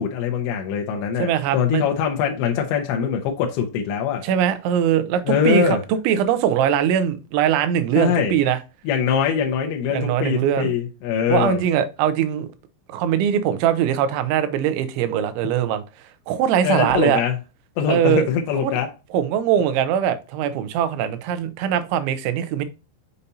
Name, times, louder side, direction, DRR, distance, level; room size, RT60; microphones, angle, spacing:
voice 1, 0.0-4.2 5.3-5.8 8.0-8.3 8.8-11.6 16.6-17.3 17.8-18.9, left 7 dB, 80° left, 3.2 m, -22 dB
voice 2, 1.2-1.9 4.2-8.6 9.9-10.7 11.3-12.5 12.9-15.8 16.3-17.2 17.9-18.3 18.6-18.8 19.1-22.7, right 9 dB, 80° right, 3.1 m, -21 dB
6.9 x 6.6 x 2.8 m
omnidirectional pair, 5.4 m